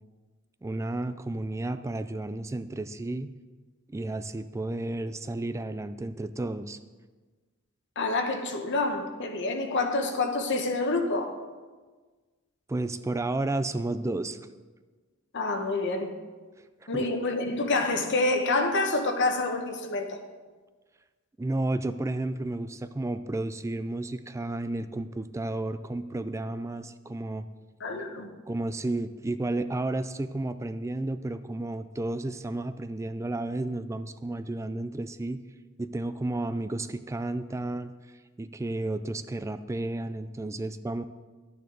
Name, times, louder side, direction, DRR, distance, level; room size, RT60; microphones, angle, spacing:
voice 1, 0.6-3.3 3.9-6.8 12.7-14.4 16.9-17.0 21.4-27.5 28.5-35.4 35.8-37.9 38.4-41.0, right 2 dB, 15° right, 12 dB, 0.3 m, -32 dB
voice 2, 8.0-11.3 15.3-16.1 16.9-20.2 27.8-28.3, left 2 dB, 60° left, 5 dB, 1.1 m, -27 dB
12.0 x 9.3 x 3.9 m, 1.4 s
head